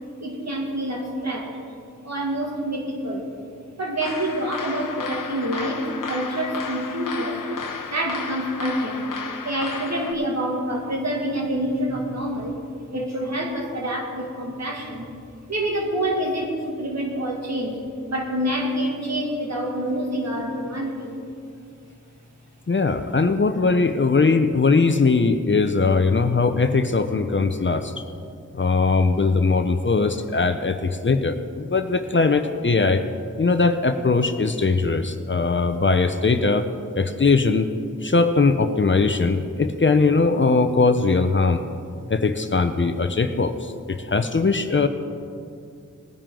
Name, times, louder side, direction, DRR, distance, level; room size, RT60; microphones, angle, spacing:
voice 1, 0.2-1.6 2.0-3.3 3.8-7.4 7.9-9.1 9.4-12.6 12.9-15.1 15.5-17.8 18.1-21.2, right 1 dB, 55° right, -1 dB, 2.3 m, -27 dB
sound 1, 4.0-10.1, left 5 dB, 85° left, 0.8 m, -33 dB
voice 2, 22.7-27.9 28.5-33.0 33.4-36.7 36.9-37.7 38.0-41.6 42.1-44.9, left 4 dB, 40° left, 8 dB, 0.7 m, -20 dB
19.0 x 10.0 x 3.8 m, 2.4 s
wide cardioid pair, 75°, 31 cm